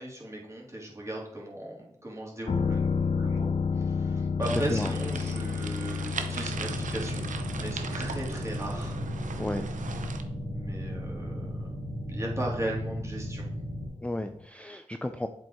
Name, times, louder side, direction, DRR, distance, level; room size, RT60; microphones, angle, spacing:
voice 1, 0.0-7.3 7.5-9.0 10.5-11.7 12.1-13.5, right 1 dB, 25° right, -3 dB, 3.0 m, -37 dB
sound 1, 2.5-14.0 14.3-14.4, left 5 dB, 55° left, 0.5 m, -32 dB
sound 2, 4.4-10.2, right 5 dB, 90° right, 0.7 m, -39 dB
sound 3, 6.5-13.9, equal, 65° right, 3.4 m, -36 dB
voice 2, 14.0-15.3, left 1 dB, 10° left, 7 dB, 0.5 m, -33 dB
7.6 x 5.4 x 4.4 m, 0.75 s
cardioid pair, 45°, 13 cm